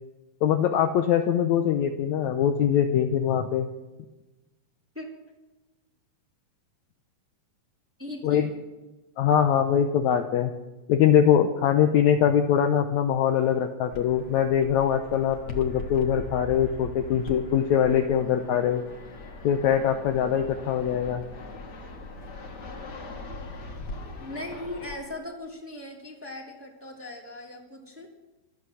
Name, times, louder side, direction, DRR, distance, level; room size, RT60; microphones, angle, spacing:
voice 1, 0.4-3.7 8.2-8.5 9.2-10.5 10.9-18.8 19.4-21.2, left 9 dB, 80° left, 6 dB, 1.6 m, -22 dB
voice 2, 8.0-8.6 24.2-28.1, left 1 dB, 5° right, -1 dB, 2.1 m, -39 dB
Fixed-wing aircraft airplane, 13.9-24.9, left 2 dB, 45° left, 1.4 m, -40 dB
25.5 x 8.5 x 6.3 m, 1.1 s
omnidirectional pair, 4.2 m